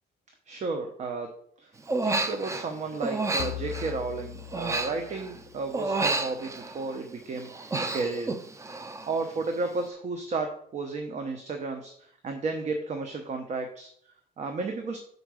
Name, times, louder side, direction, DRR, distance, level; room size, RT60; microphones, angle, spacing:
voice 1, 0.5-1.3 1.6-1.7 2.0-8.3 9.1-15.0, right 3 dB, 45° right, 5 dB, 0.9 m, -33 dB
Human voice, 1.9-2.7 3.0-5.4 5.7-7.0 7.3-9.2 9.4-9.8, right 3 dB, 15° right, 0.6 m, -31 dB
sound 1, 3.4-6.0, left 15 dB, 70° left, 0.4 m, -40 dB
5.3 x 4.6 x 6.2 m, 0.64 s
cardioid pair, 110°, 17 cm